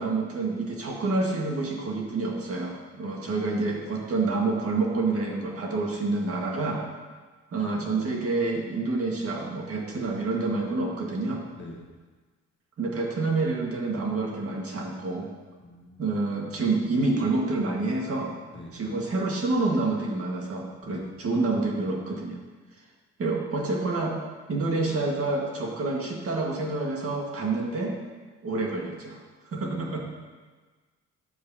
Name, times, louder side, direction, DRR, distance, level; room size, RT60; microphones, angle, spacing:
voice 1, 0.0-6.8 7.5-11.4 12.8-15.3 16.0-18.3 18.7-22.4 23.2-24.2 24.5-27.9 28.4-29.2 29.5-30.0, right 3 dB, 50° right, -1 dB, 1.7 m, -28 dB
voice 2, 15.6-16.0 18.5-18.7 20.8-21.0 29.7-30.0, left 2 dB, 40° left, -2 dB, 1.8 m, -44 dB
9.8 x 7.8 x 2.8 m, 1.4 s
cardioid pair, 90°, 30 cm